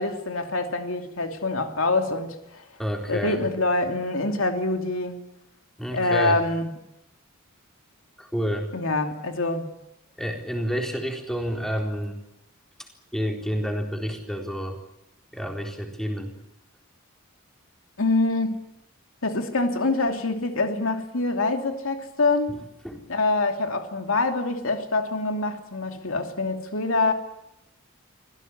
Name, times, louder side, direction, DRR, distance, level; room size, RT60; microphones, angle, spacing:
voice 1, 0.0-2.6 3.1-5.3 5.9-6.7 8.7-9.7 18.0-18.6 19.2-22.6 23.1-27.1, left 2 dB, 75° left, 2.8 m, -25 dB
voice 2, 2.8-3.4 5.8-6.4 8.2-8.7 10.2-12.2 13.1-14.8 15.3-16.3 22.5-22.6 22.8-23.1, equal, ahead, 4.1 m, -29 dB
25.5 x 16.5 x 9.9 m
head